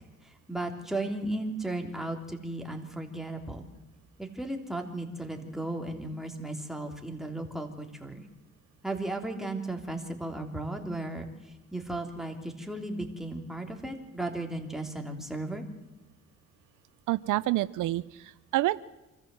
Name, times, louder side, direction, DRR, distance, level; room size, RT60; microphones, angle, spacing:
voice 1, 0.2-3.7 4.2-8.2 8.8-15.6, right 2 dB, ahead, 2 dB, 3.4 m, -35 dB
voice 2, 17.1-18.8, right 16 dB, 85° right, 17 dB, 0.6 m, -28 dB
25.5 x 14.5 x 7.8 m, 1.0 s
cardioid pair, 90°, 30 cm